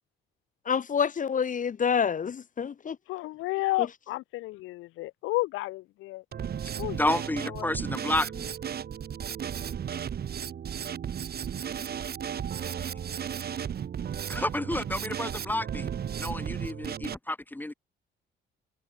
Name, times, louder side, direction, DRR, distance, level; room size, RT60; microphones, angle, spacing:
voice 1, 0.7-3.0 3.8-3.9, left 7 dB, 40° left, 1.0 m, -27 dB
voice 2, 3.1-6.2 6.8-7.0 7.6-7.7, left 18 dB, 90° left, 0.5 m, -31 dB
Drum kit, 6.3-17.1, right 8 dB, 55° right, 1.9 m, -34 dB
voice 3, 7.0-8.5 12.8-13.1 14.3-15.9 16.2-17.7, left 1 dB, 10° left, 0.8 m, -30 dB
cardioid pair, 90°, 20 cm